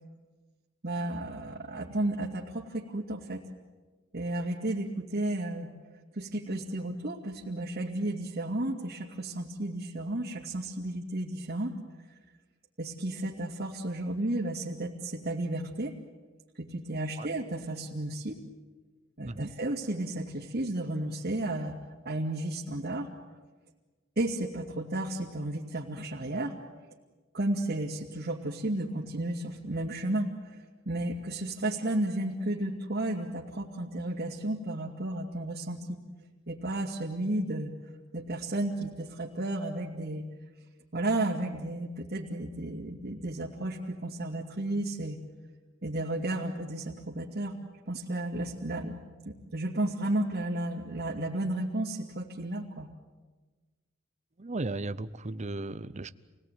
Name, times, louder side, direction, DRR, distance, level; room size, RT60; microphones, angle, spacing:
voice 1, 0.8-3.4 4.1-5.7 6.1-11.7 12.8-16.0 16.6-18.4 19.2-21.8 22.0-23.1 24.2-26.6 27.3-36.0 36.5-37.7 38.1-40.2 40.9-45.2 45.8-47.6 47.9-49.0 49.5-52.9, right 1 dB, 50° right, -6 dB, 2.5 m, -33 dB
voice 2, 54.4-56.1, right 2 dB, 35° right, 14 dB, 0.8 m, -35 dB
28.0 x 19.0 x 9.4 m, 1.3 s
head